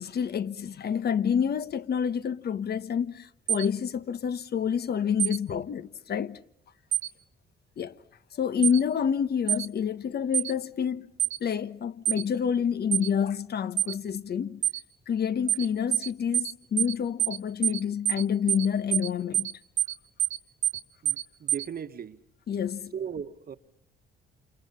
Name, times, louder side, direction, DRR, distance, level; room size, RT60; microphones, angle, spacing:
voice 1, 0.0-6.4 7.8-7.9 8.3-11.1 11.4-14.6 15.1-19.5 22.5-22.9, left 7 dB, 55° left, 1.2 m, -28 dB
sound 1, 3.5-3.7 5.2-5.4 6.9-7.1 8.6-8.8 9.5-9.7 10.3-10.5 11.2-11.4 12.1-12.2 12.9-13.1 13.8-13.9 14.6-14.8 15.5-15.7 15.9-16.1 16.3-16.5 16.8-16.9 17.2-17.4 17.6-17.8 18.1-18.2 18.5-18.7 18.9-19.1 19.3-19.5 19.8-19.9 20.2-20.4 20.6-20.8 21.1-21.2 21.5-21.6, right 11 dB, 85° right, 2.0 m, -25 dB
voice 2, 21.0-22.2 22.9-23.6, right 7 dB, 50° right, 1.5 m, -37 dB
29.0 x 28.0 x 5.7 m
cardioid pair, 90°, 20 cm